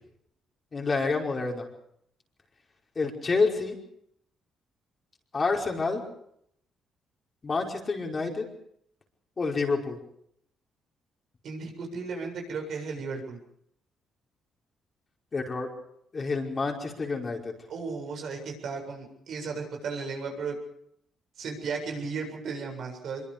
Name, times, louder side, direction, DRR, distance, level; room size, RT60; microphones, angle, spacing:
voice 1, 0.7-1.7 2.9-3.8 5.3-6.0 7.4-8.5 9.4-10.0 15.3-15.7 16.1-17.5, left 4 dB, 35° left, 0 dB, 5.3 m, -28 dB
voice 2, 11.4-13.4 17.7-20.6 21.4-23.2, right 4 dB, 65° right, 3 dB, 7.4 m, -35 dB
24.5 x 23.0 x 5.3 m, 0.71 s
cardioid pair, 90°, 0 cm